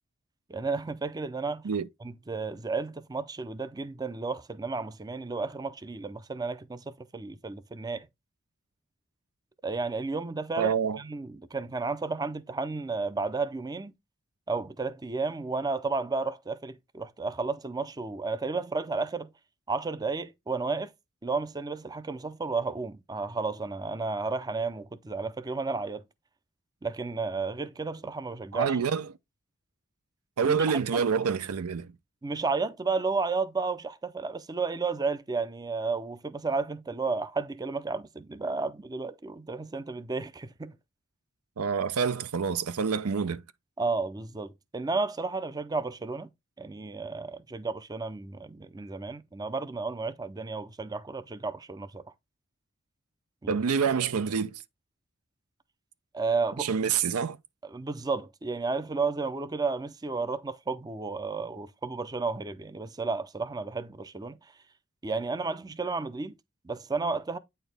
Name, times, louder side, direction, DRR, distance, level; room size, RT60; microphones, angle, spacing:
voice 1, 0.5-1.6 2.0-8.1 9.6-13.9 14.5-19.3 19.7-20.9 21.2-26.0 26.8-28.8 30.4-30.6 30.9-31.0 32.2-40.7 43.8-46.3 46.6-52.0 53.4-53.6 56.1-56.9 57.6-64.4 65.0-66.3 66.6-67.4, right 4 dB, 15° right, 0.4 m, -32 dB
voice 2, 10.6-11.0 28.5-29.1 30.4-31.9 41.6-43.4 53.5-54.6 56.6-57.4, right 6 dB, 85° right, 0.5 m, -27 dB
8.9 x 4.5 x 3.4 m
head